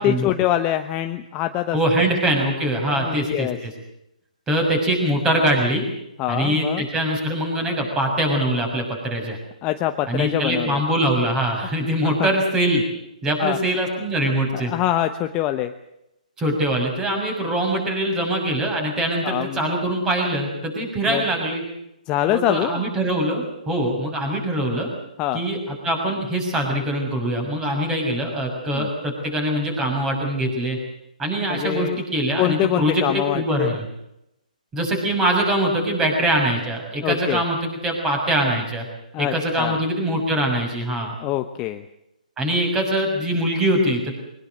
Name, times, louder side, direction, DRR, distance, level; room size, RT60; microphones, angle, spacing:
voice 1, 0.0-1.8 2.9-3.6 6.2-6.8 9.6-10.8 12.2-12.3 13.4-13.6 14.5-15.7 19.2-19.7 21.1-21.2 22.1-22.8 25.2-25.4 28.7-28.9 31.5-32.0 32.4-33.7 37.0-37.4 39.1-39.8 41.2-41.8, left 13 dB, 20° left, 8 dB, 1.0 m, -24 dB
voice 2, 1.7-3.7 4.5-5.9 6.3-9.4 10.1-12.8 13.2-14.7 16.4-21.6 22.3-24.9 25.3-30.8 31.2-33.8 34.7-38.8 39.2-41.1 42.4-44.2, right 1 dB, 15° right, 3 dB, 6.5 m, -23 dB
23.0 x 20.5 x 7.8 m, 0.83 s
hypercardioid pair, 150°, 4 cm